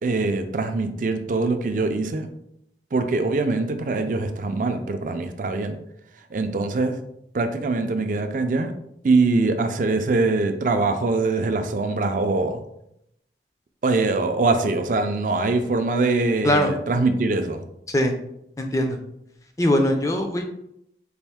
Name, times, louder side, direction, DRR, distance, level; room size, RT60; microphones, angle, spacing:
voice 1, 0.0-2.3 2.9-5.8 6.3-7.0 7.3-8.7 9.0-12.6 13.8-17.6, right 3 dB, 45° right, 7 dB, 0.4 m, -23 dB
voice 2, 18.6-19.0 19.6-20.4, left 1 dB, 20° left, 4 dB, 0.4 m, -21 dB
4.2 x 2.5 x 3.5 m, 0.77 s
head